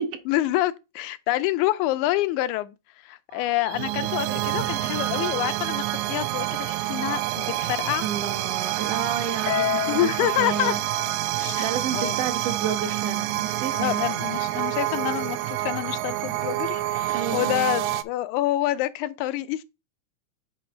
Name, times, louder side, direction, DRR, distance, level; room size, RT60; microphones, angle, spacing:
voice 1, 0.3-2.7 3.0-8.1 9.9-10.7 11.4-11.7 11.9-12.2 13.7-19.6, left 15 dB, 90° left, 2.0 m, -27 dB
sound 1, 3.3-18.0, right 14 dB, 85° right, 1.9 m, -28 dB
voice 2, 8.0-10.8 11.4-14.0 17.1-17.5, right 8 dB, 70° right, 1.7 m, -30 dB
Harp, 9.5-11.9, left 13 dB, 65° left, 1.1 m, -31 dB
8.6 x 3.0 x 5.1 m
omnidirectional pair, 3.4 m